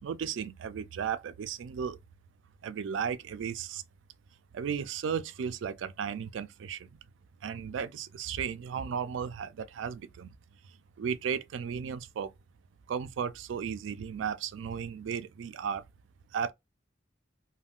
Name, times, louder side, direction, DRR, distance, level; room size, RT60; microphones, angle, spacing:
voice 1, 0.0-2.0 2.6-3.8 4.5-7.0 7.4-10.4 11.0-12.3 12.9-15.9 16.3-16.5, right 7 dB, 75° right, 0.3 m, -35 dB
2.4 x 2.1 x 3.5 m
head